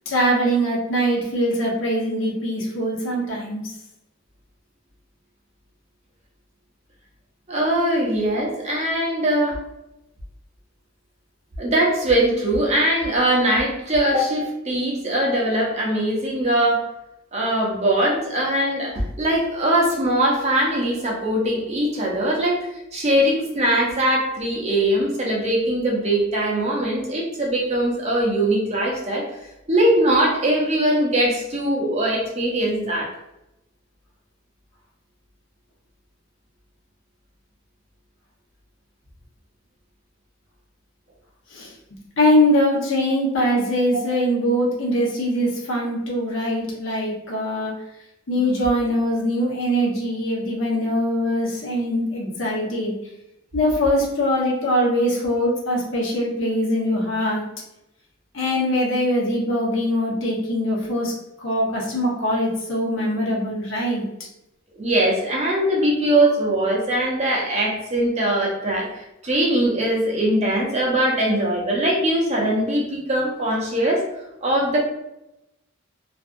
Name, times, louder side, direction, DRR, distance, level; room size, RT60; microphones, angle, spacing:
voice 1, 0.1-3.7 41.5-41.7 42.1-47.7 48.3-52.9 53.5-57.5 58.3-61.1 61.4-64.0, equal, 75° left, -3 dB, 0.9 m, -22 dB
voice 2, 7.5-9.6 11.6-16.8 17.3-29.3 29.7-33.1 43.9-44.0 64.7-74.0 74.4-74.8, right 1 dB, 35° right, -2 dB, 0.7 m, -21 dB
2.6 x 2.4 x 2.5 m, 0.88 s
head